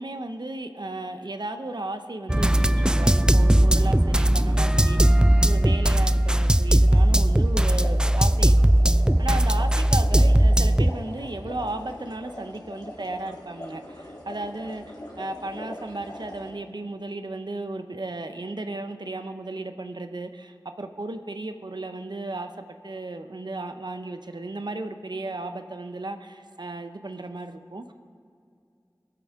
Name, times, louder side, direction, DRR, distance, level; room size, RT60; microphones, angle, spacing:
voice 1, 0.0-5.2 5.4-8.6 9.2-22.5 22.8-27.9, right 2 dB, 80° right, 8 dB, 0.8 m, -35 dB
sound 1, 2.3-10.9, right 1 dB, 10° right, 0.3 m, -19 dB
sound 2, 6.9-16.5, left 1 dB, 70° left, 3.7 m, -41 dB
21.0 x 8.4 x 3.6 m, 2.4 s
wide cardioid pair, 45°, 7 cm